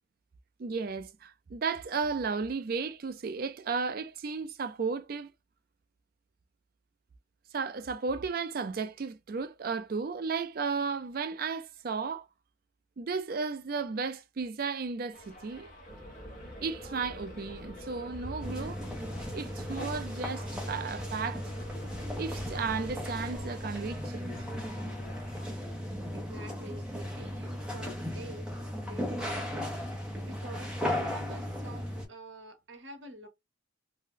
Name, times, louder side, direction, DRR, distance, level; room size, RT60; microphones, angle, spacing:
voice 1, 0.6-5.3 7.5-12.3 13.0-15.7 16.6-18.8 19.3-21.5 22.2-24.4, right 5 dB, 45° right, 0.4 m, -34 dB
Subway metro underground, 15.1-25.5, equal, 40° left, 1.0 m, -53 dB
sound 1, 15.9-23.5, equal, 10° left, 1.1 m, -45 dB
sound 2, 18.4-32.1, left 1 dB, 5° right, 0.6 m, -36 dB
voice 2, 26.1-28.5 28.8-29.7 30.2-33.3, right 2 dB, 65° right, 0.9 m, -47 dB
2.6 x 2.1 x 3.7 m
head